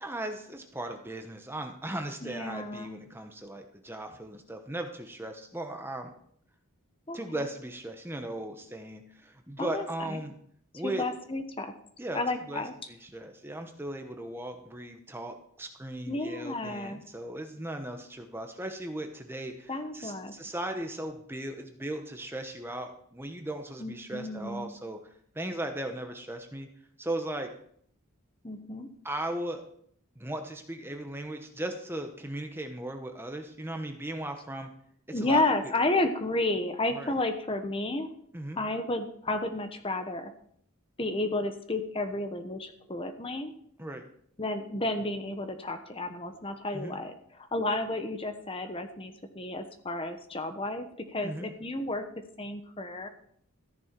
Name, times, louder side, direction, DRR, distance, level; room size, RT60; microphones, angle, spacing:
voice 1, 0.0-6.1 7.1-10.4 10.7-11.0 12.0-12.2 12.5-26.7 27.0-27.5 29.0-29.6 30.2-34.7 35.1-35.7 36.9-37.1 38.3-38.6 43.8-44.0 46.7-47.0 51.2-51.5, right 1 dB, 10° right, 5 dB, 0.9 m, -37 dB
voice 2, 2.2-3.0 7.1-7.5 9.6-10.2 10.8-11.7 12.1-12.7 16.1-17.0 19.7-20.3 23.8-24.7 28.4-28.9 35.1-38.1 38.5-40.3 41.0-43.5 44.4-52.0 52.4-53.1, left 2 dB, 25° left, 7 dB, 1.0 m, -32 dB
14.0 x 10.5 x 4.5 m, 0.64 s
head